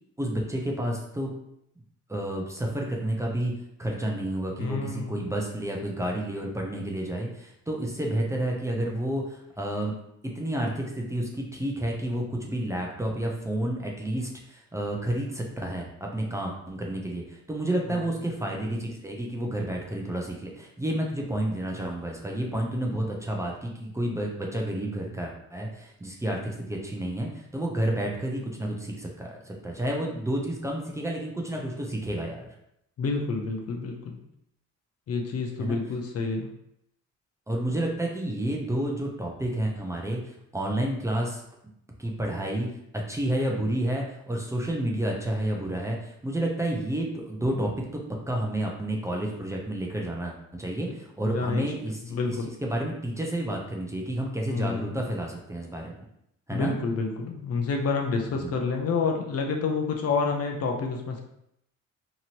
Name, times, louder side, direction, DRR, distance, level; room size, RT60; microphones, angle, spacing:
voice 1, 0.2-1.3 2.1-3.5 3.8-9.9 10.2-32.5 35.6-35.8 37.5-41.4 42.0-42.7 42.9-56.0 56.5-56.8 58.3-58.5, right 1 dB, 10° right, -1 dB, 0.5 m, -30 dB
voice 2, 4.6-5.2 33.0-34.2 35.1-36.5 51.3-51.6 52.1-52.5 54.5-55.0 56.5-61.2, left 4 dB, 55° left, 2 dB, 0.6 m, -28 dB
2.9 x 2.5 x 2.9 m, 0.77 s
cardioid pair, 90°, 30 cm